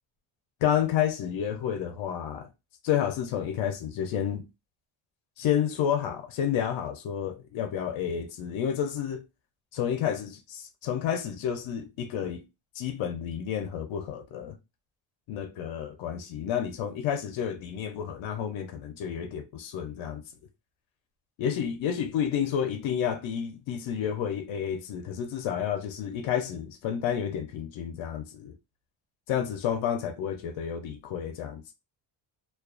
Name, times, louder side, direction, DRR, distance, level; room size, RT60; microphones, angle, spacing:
voice 1, 0.6-2.5 2.8-4.4 5.4-9.2 9.7-12.4 12.7-14.6 15.3-20.2 21.4-28.5 29.3-31.6, left 9 dB, 75° left, 0.5 m, -30 dB
2.3 x 2.3 x 2.4 m
cardioid pair, 160°, 48 cm